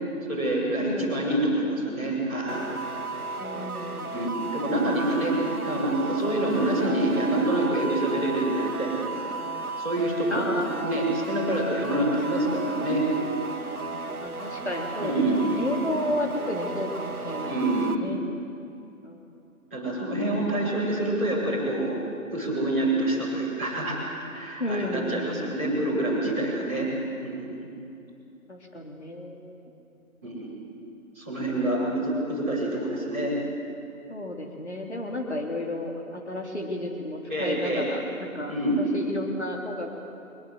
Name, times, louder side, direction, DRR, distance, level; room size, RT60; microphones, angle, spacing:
voice 1, 0.3-2.6 4.1-5.4 5.6-10.4 10.8-13.1 15.0-15.5 17.5-18.0 19.7-22.0 22.3-26.9 27.2-27.7 30.2-30.5 31.1-33.4 37.3-37.9 38.5-38.8, right 1 dB, 10° right, -14 dB, 5.3 m, -27 dB
voice 2, 0.8-1.4 3.4-4.1 10.3-10.8 14.2-18.2 19.0-19.2 24.6-25.6 28.5-29.7 31.8-31.9 34.1-40.0, left 1 dB, 50° left, 1 dB, 2.9 m, -33 dB
sound 1, 2.5-17.9, right 3 dB, 75° right, 2.1 m, -34 dB
24.5 x 21.5 x 7.8 m, 2.6 s
figure-of-eight pair, 180°, 43 cm